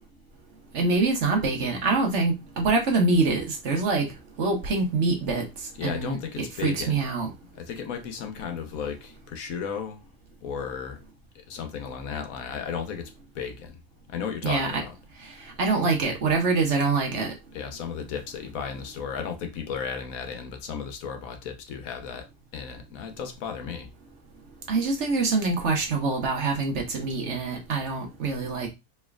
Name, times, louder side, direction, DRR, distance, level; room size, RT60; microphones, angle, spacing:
voice 1, 0.7-4.1 4.4-5.4 5.8-7.3 14.4-14.8 15.4-17.3 24.7-28.7, right 3 dB, 55° right, 1.1 m, -25 dB
voice 2, 5.8-7.0 7.5-10.0 10.4-11.0 11.3-13.7 14.1-14.9 17.5-22.3 22.5-23.9, left 7 dB, 70° left, 1.2 m, -34 dB
4.3 x 3.3 x 2.3 m
omnidirectional pair, 1.5 m